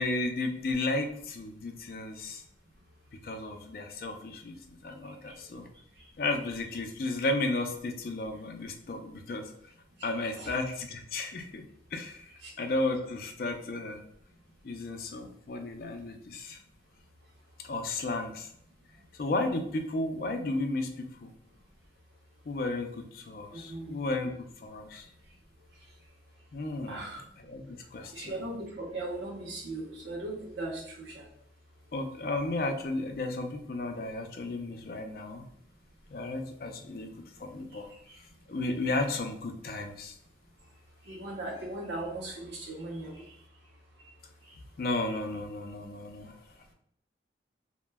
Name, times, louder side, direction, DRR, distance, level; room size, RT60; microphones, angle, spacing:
voice 1, 0.0-2.4 3.2-5.7 6.2-9.5 10.0-11.6 11.9-12.3 12.6-14.0 14.6-16.6 17.6-18.5 19.2-21.3 22.5-25.1 26.5-27.1 27.4-28.3 31.9-35.4 36.1-37.1 37.4-37.9 38.5-40.2 44.8-46.4, left 2 dB, 55° left, 5 dB, 0.4 m, -33 dB
voice 2, 10.0-10.5 12.4-12.5 23.5-23.9 26.9-27.2 28.1-31.3 37.7-37.8 38.1-38.2 41.1-43.3 44.4-44.5, right 2 dB, 70° right, -3 dB, 0.6 m, -38 dB
2.1 x 2.0 x 3.3 m, 0.68 s
head